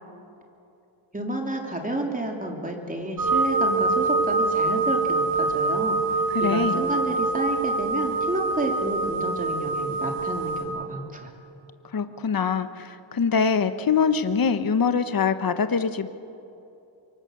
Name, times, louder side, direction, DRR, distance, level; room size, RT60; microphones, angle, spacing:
voice 1, 1.1-11.3, right 1 dB, 15° right, 1 dB, 3.3 m, -31 dB
sound 1, 3.2-10.6, right 3 dB, 45° right, 4.4 m, -25 dB
voice 2, 6.3-6.8 11.9-16.1, left 6 dB, 45° left, 11 dB, 1.1 m, -23 dB
26.0 x 23.5 x 6.6 m, 2.8 s
wide cardioid pair, 115°, 48 cm